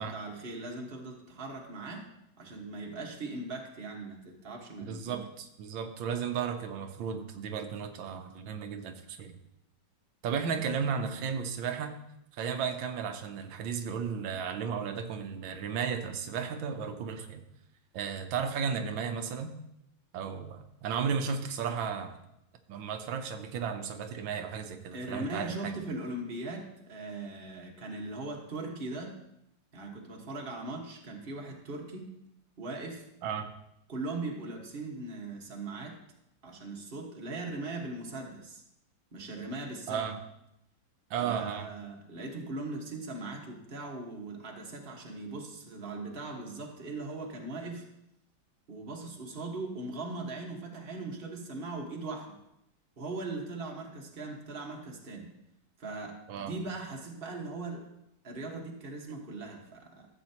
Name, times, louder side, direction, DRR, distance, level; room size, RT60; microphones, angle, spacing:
voice 1, 0.0-2.1 2.4-5.2 10.4-10.6 21.0-21.1 24.9-29.1 29.7-32.1 32.6-33.0 33.9-36.0 36.4-38.6 39.1-40.1 41.2-47.9 48.7-52.3 53.0-55.3 55.8-57.9 58.2-60.1, right 2 dB, 30° right, 0 dB, 1.5 m, -39 dB
voice 2, 4.8-9.3 10.2-12.0 12.3-17.4 17.9-19.5 20.1-22.2 22.7-25.8 33.2-33.5 39.9-40.2 41.1-41.7 56.3-56.6, right 6 dB, 90° right, 6 dB, 1.6 m, -34 dB
14.5 x 8.0 x 2.9 m, 0.82 s
omnidirectional pair, 2.1 m